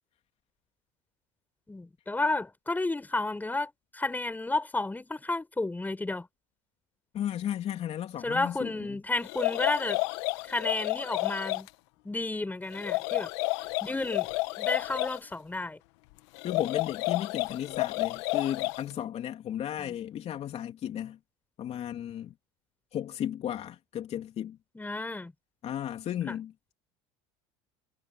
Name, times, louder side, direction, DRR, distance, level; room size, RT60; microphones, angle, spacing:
voice 1, 1.7-6.3 8.2-10.0 10.5-11.7 12.0-13.3 13.8-14.3 14.6-15.8 19.8-19.9 24.7-25.3 26.3-26.4, left 2 dB, 10° left, 6.8 m, -32 dB
voice 2, 7.1-9.0 16.4-21.2 21.6-22.3 22.9-24.6 25.6-26.5, left 10 dB, 45° left, 3.3 m, -34 dB
sound 1, 9.2-11.7 12.7-15.2 16.3-18.9, left 22 dB, 75° left, 1.5 m, -31 dB
supercardioid pair, 95°, 14 cm